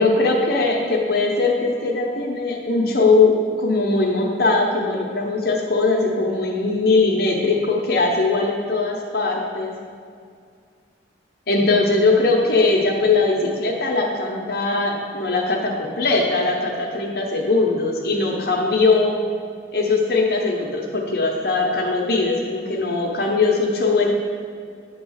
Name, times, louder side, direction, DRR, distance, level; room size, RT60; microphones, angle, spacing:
voice 1, 0.0-9.7 11.5-19.1 19.7-24.1, left 3 dB, 55° left, -1 dB, 0.9 m, -20 dB
9.0 x 3.1 x 6.4 m, 2.2 s
head